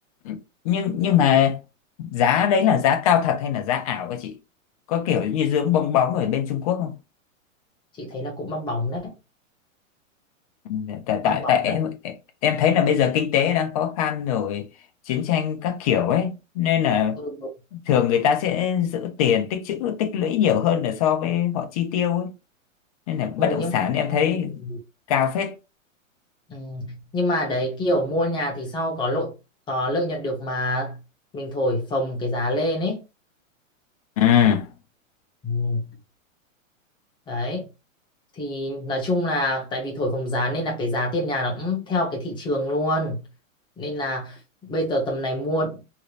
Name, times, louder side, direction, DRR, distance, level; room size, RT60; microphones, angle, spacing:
voice 1, 0.2-1.6 2.0-4.3 4.9-6.9 10.7-12.1 12.4-14.7 15.1-17.2 17.7-22.3 23.1-24.6 25.1-25.5 34.2-34.7, left 9 dB, 30° left, 0.5 m, -22 dB
voice 2, 8.0-9.1 11.2-11.7 17.2-17.3 23.4-23.7 24.6-24.8 26.5-29.3 29.7-31.0 31.3-33.0 35.4-35.9 37.3-37.7 38.4-43.2 43.8-45.8, left 1 dB, 10° left, 0.9 m, -26 dB
3.1 x 2.8 x 2.4 m
hypercardioid pair, 155°, 40 cm